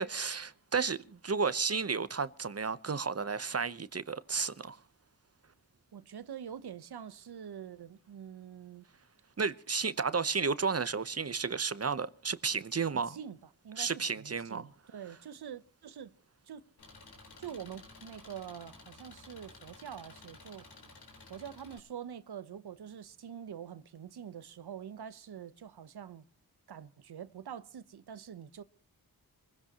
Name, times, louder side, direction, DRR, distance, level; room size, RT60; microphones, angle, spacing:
voice 1, 0.0-4.8 9.4-13.2 13.8-14.7, right 5 dB, 40° right, 0.9 m, -32 dB
voice 2, 5.9-8.9 12.7-13.4 13.6-16.1 16.5-16.6 17.4-20.7 21.3-26.2 26.7-28.6, right 8 dB, 80° right, 1.0 m, -45 dB
Engine, 16.8-21.8, left 3 dB, 85° left, 4.3 m, -54 dB
27.0 x 16.0 x 3.0 m
cardioid pair, 50°, 38 cm